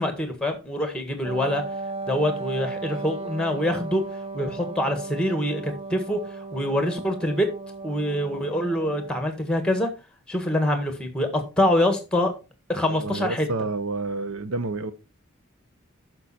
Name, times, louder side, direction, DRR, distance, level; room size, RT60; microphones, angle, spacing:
voice 1, 0.0-1.6 2.1-4.0 4.3-6.2 6.5-7.5 7.8-9.9 10.3-12.3 12.7-13.5, left 1 dB, 5° left, 1.5 m, -25 dB
Wind instrument woodwind instrument, 1.2-9.3, right 3 dB, 25° right, 0.6 m, -36 dB
voice 2, 12.9-14.9, right 3 dB, 70° right, 0.8 m, -29 dB
9.4 x 6.1 x 4.2 m
head